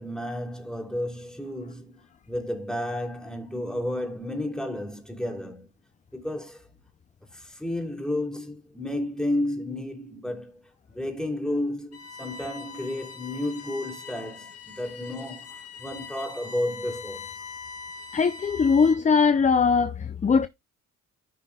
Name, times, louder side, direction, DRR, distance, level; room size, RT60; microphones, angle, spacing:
voice 1, 0.0-2.0 2.3-5.7 6.1-6.7 7.3-17.3, left 1 dB, ahead, 3.0 m, -32 dB
Bowed string instrument, 11.9-19.2, left 5 dB, 50° left, 1.9 m, -42 dB
voice 2, 18.1-20.5, left 5 dB, 25° left, 0.6 m, -21 dB
15.0 x 5.8 x 2.3 m
cardioid pair, 90°, 30 cm